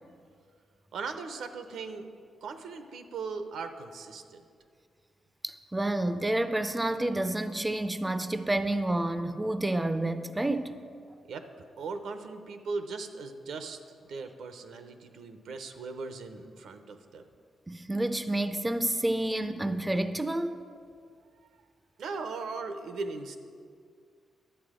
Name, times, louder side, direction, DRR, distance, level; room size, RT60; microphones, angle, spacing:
voice 1, 0.9-2.1 2.4-4.4 11.3-11.4 11.8-17.3 22.0-23.4, right 4 dB, 85° right, 8 dB, 0.7 m, -38 dB
voice 2, 5.4-10.8 17.7-20.6, right 1 dB, 10° right, 10 dB, 0.4 m, -29 dB
11.0 x 8.1 x 5.0 m, 2.2 s
wide cardioid pair, 130°, 0 cm